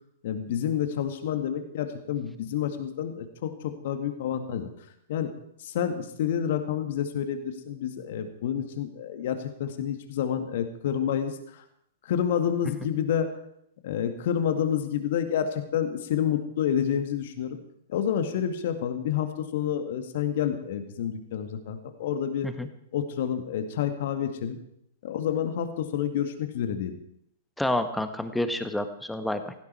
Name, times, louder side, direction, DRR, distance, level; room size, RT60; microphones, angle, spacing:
voice 1, 0.2-4.7 5.1-5.3 5.6-11.6 12.0-13.3 13.8-17.6 17.9-22.5 22.9-24.6 25.0-26.9, left 9 dB, 55° left, 8 dB, 2.2 m, -29 dB
voice 2, 27.6-29.5, left 1 dB, 5° left, 9 dB, 1.5 m, -29 dB
16.5 x 16.5 x 4.7 m, 0.72 s
figure-of-eight pair, 105°, 0 cm